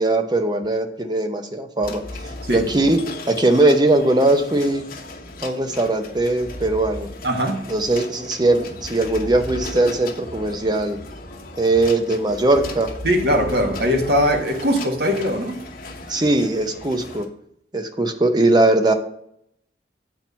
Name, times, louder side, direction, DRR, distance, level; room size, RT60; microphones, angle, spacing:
voice 1, 0.0-2.0 2.5-3.0 3.3-4.8 5.4-7.1 7.7-11.0 11.6-12.9 16.1-17.3 17.7-18.9, right 2 dB, 25° right, 0.7 m, -19 dB
sound 1, 1.8-17.3, left 2 dB, 50° left, 1.1 m, -36 dB
voice 2, 7.2-7.6 13.0-15.6, equal, 60° right, 1.3 m, -20 dB
7.6 x 4.5 x 5.5 m
head